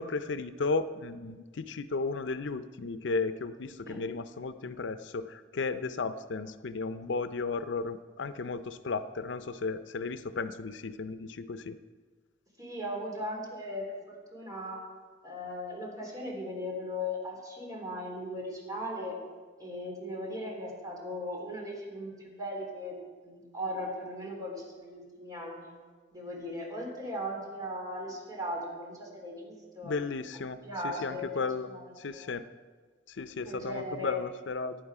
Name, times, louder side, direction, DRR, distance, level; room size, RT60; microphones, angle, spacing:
voice 1, 0.0-11.8 29.8-31.7 32.0-32.4 33.1-34.8, left 4 dB, 80° left, 12 dB, 0.6 m, -34 dB
voice 2, 12.6-14.0 14.3-14.8 15.2-19.2 19.6-23.0 23.2-25.7 26.1-29.9 30.4-32.3 33.5-34.3, left 1 dB, 20° right, -1 dB, 3.5 m, -38 dB
16.0 x 10.5 x 4.8 m, 1.4 s
head